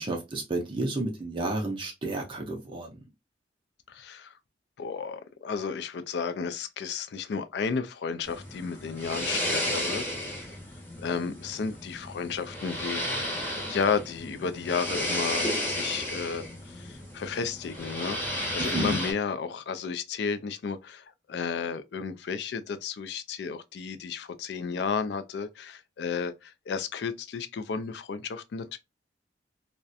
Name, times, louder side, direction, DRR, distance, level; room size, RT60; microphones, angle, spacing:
voice 1, 0.0-2.9 18.6-19.0, right 2 dB, 25° right, 0.4 m, -31 dB
voice 2, 3.9-4.3 4.8-10.0 10.3-10.4 11.0-13.1 13.7-18.2 18.5-28.8, left 5 dB, 60° left, 0.3 m, -33 dB
sound 1, 8.2-19.1, left 1 dB, 10° left, 0.7 m, -33 dB
2.4 x 2.1 x 2.5 m
head